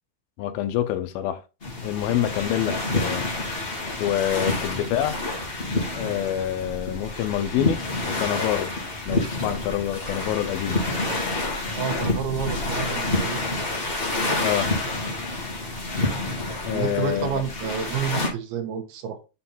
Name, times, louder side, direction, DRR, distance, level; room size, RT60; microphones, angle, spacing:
voice 1, 0.4-1.4 1.8-3.3 4.0-5.2 5.9-8.8 9.1-10.8 14.4-14.7 16.7-17.4, left 11 dB, 80° left, 2.4 m, -26 dB
sound 1, 1.6-18.3, left 2 dB, 35° left, 0.8 m, -28 dB
voice 2, 11.8-13.6 16.7-19.2, right 7 dB, 85° right, 2.9 m, -29 dB
6.9 x 3.8 x 4.3 m
omnidirectional pair, 4.4 m